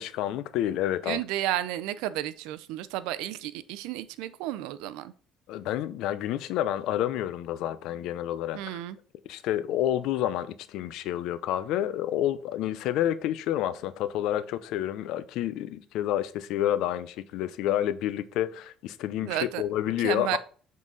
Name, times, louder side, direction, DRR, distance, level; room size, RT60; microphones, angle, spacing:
voice 1, 0.0-1.2 5.5-8.8 9.3-20.4, left 12 dB, 75° left, 0.6 m, -29 dB
voice 2, 1.1-5.1 8.5-9.0 19.2-19.6 20.0-20.4, right 14 dB, 85° right, 0.5 m, -32 dB
7.4 x 3.9 x 4.0 m
cardioid pair, 105°, 0 cm